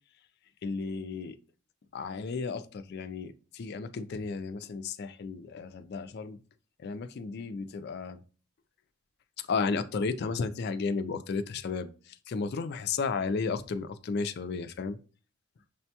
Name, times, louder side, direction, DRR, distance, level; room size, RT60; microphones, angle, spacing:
voice 1, 0.6-1.4 1.9-6.4 6.8-8.2 9.4-15.0, left 4 dB, 45° left, 0.3 m, -33 dB
6.6 x 2.2 x 2.8 m
head